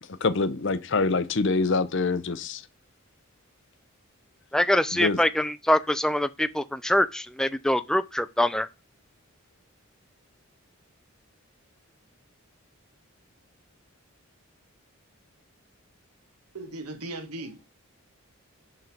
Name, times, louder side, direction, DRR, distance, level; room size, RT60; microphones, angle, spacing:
voice 1, 0.2-2.6 4.9-5.2, left 3 dB, 55° left, 0.7 m, -25 dB
voice 2, 4.5-8.7, left 1 dB, 5° left, 0.3 m, -24 dB
voice 3, 16.5-17.7, right 2 dB, 90° right, 1.1 m, -37 dB
10.5 x 3.9 x 4.5 m
head